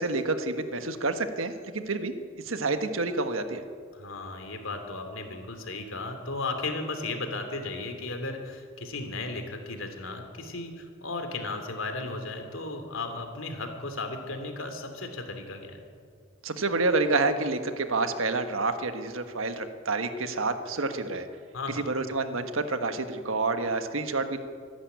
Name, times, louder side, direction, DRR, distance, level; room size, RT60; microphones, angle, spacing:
voice 1, 0.0-2.1 2.5-3.6 16.4-21.2 21.7-24.4, right 3 dB, 80° right, 8 dB, 1.5 m, -28 dB
voice 2, 3.9-15.8 21.5-21.8, left 3 dB, 75° left, 6 dB, 2.9 m, -35 dB
25.0 x 11.0 x 9.4 m, 2.2 s
head